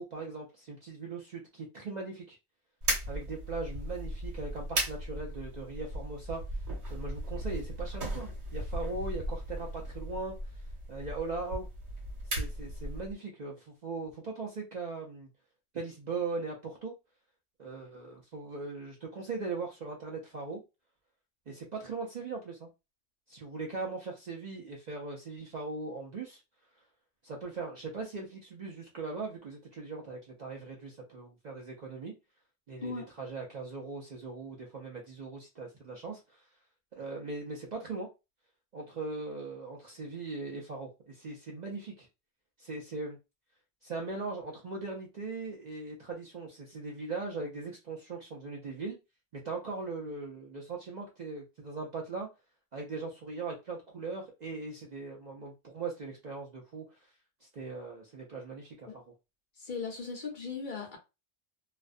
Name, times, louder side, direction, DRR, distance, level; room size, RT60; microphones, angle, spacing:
voice 1, 0.0-2.4 3.1-6.4 6.9-10.3 10.9-11.7 12.3-15.3 15.7-16.9 17.6-20.6 21.5-22.7 23.3-26.4 27.2-32.1 32.7-36.4 37.0-38.1 38.7-42.1 42.6-43.2 43.8-49.0 49.3-52.3 52.7-57.0 57.4-59.0, right 3 dB, 55° right, 0.5 m, -39 dB
sound 1, 2.8-13.1, right 1 dB, 75° right, 1.2 m, -37 dB
voice 2, 59.6-61.0, left 4 dB, 50° left, 0.8 m, -38 dB
2.4 x 2.1 x 2.4 m
omnidirectional pair, 1.2 m